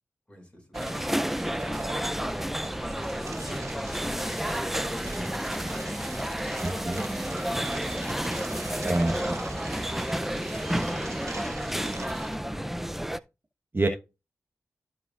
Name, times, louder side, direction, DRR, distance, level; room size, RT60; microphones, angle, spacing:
voice 1, 0.3-1.9 2.6-5.9 6.3-8.4 8.9-10.0 10.2-11.0 11.3-12.8, equal, 20° left, 0 dB, 5.6 m, -48 dB
sound 1, 0.7-13.2, equal, 5° right, 0.5 m, -31 dB
sound 2, 0.7-12.3, right 4 dB, 60° right, 1.0 m, -44 dB
voice 2, 6.6-7.0 8.8-9.4 13.7-13.9, right 2 dB, 35° right, 3 dB, 1.2 m, -26 dB
14.5 x 5.1 x 2.4 m, 0.27 s
cardioid pair, 50°, 6 cm